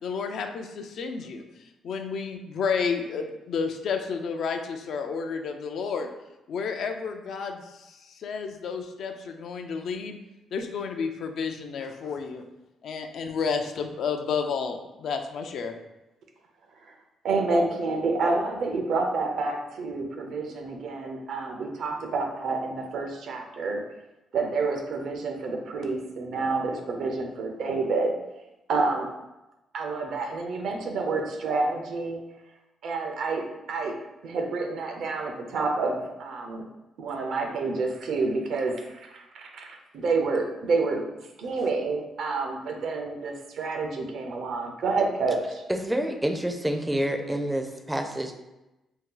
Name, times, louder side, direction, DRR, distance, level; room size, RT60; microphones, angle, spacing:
voice 1, 0.0-6.1 6.5-10.2 10.5-12.4 12.8-15.7, left 5 dB, 70° left, 5 dB, 0.4 m, -31 dB
voice 2, 17.2-23.8 24.3-28.1 28.7-29.1 29.7-32.2 32.8-33.9 34.2-36.6 37.0-41.0 41.4-45.6, right 3 dB, 70° right, 3 dB, 0.5 m, -28 dB
voice 3, 45.7-48.3, right 1 dB, 10° right, 4 dB, 0.4 m, -28 dB
2.7 x 2.3 x 3.7 m, 0.99 s
cardioid pair, 90°, 0 cm